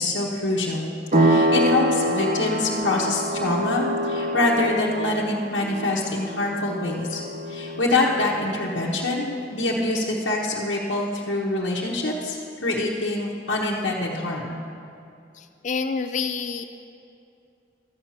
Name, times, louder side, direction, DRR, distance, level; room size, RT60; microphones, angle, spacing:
voice 1, 0.0-7.2 7.5-14.6, left 2 dB, 75° left, -4 dB, 1.2 m, -25 dB
sound 1, 1.1-9.5, right 1 dB, 40° right, 0.7 m, -26 dB
voice 2, 15.3-16.6, left 5 dB, 40° left, 8 dB, 0.4 m, -28 dB
13.0 x 5.8 x 8.6 m, 2.5 s
head